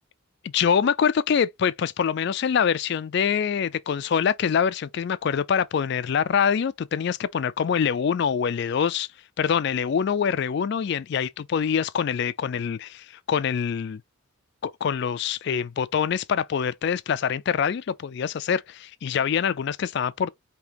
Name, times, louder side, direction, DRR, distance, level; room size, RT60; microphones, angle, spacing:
voice 1, 0.4-9.1 9.4-14.0 14.6-20.3, left 7 dB, 55° left, 0.3 m, -25 dB
5.0 x 2.8 x 2.9 m
head